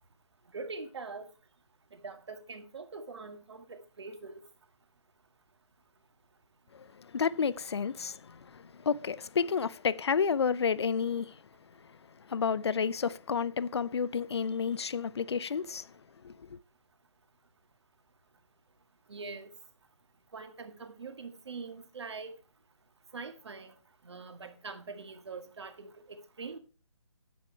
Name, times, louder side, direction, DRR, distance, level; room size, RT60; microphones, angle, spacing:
voice 1, 0.5-1.3 1.9-4.3 19.1-19.5 20.3-22.3 23.1-23.7 24.0-26.6, right 4 dB, 60° right, 2.0 m, -43 dB
voice 2, 6.7-11.4 12.3-15.9 16.2-16.3, left 6 dB, 55° left, 0.6 m, -31 dB
9.2 x 8.7 x 4.6 m
hypercardioid pair, 165°, 16 cm